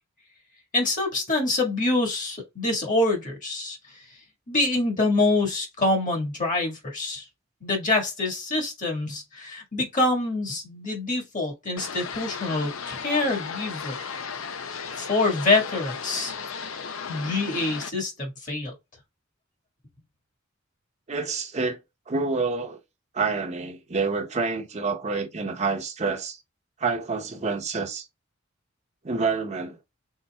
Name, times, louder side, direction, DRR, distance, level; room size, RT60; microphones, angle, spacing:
voice 1, 0.7-3.8 4.5-7.3 7.6-14.0 15.0-16.4 17.1-18.7, left 2 dB, 40° left, 1.8 m, -26 dB
sound 1, 11.8-17.9, left 6 dB, 80° left, 0.6 m, -35 dB
voice 2, 21.1-21.8 22.1-22.8 23.1-26.4 26.8-28.1 29.0-29.8, right 4 dB, 35° right, 0.9 m, -28 dB
5.5 x 3.9 x 2.3 m
head